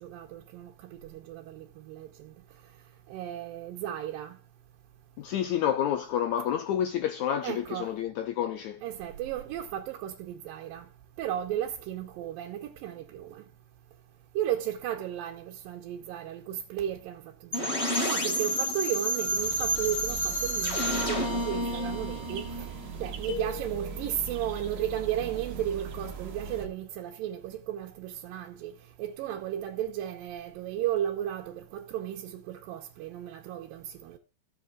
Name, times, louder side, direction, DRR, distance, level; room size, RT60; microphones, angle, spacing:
voice 1, 0.0-2.3 3.1-4.4 7.4-7.9 8.8-10.9 11.2-13.4 14.4-17.3 17.6-22.7 23.0-28.7 29.0-34.2, right 11 dB, 85° right, 2.6 m, -34 dB
voice 2, 5.2-8.8 21.2-21.3, left 10 dB, 80° left, 1.7 m, -29 dB
sound 1, 17.5-23.3, equal, 25° left, 1.6 m, -30 dB
sound 2, 19.3-26.7, right 5 dB, 60° right, 2.6 m, -40 dB
sound 3, 23.3-24.5, left 9 dB, 60° left, 1.7 m, -40 dB
16.5 x 7.4 x 2.4 m
omnidirectional pair, 4.0 m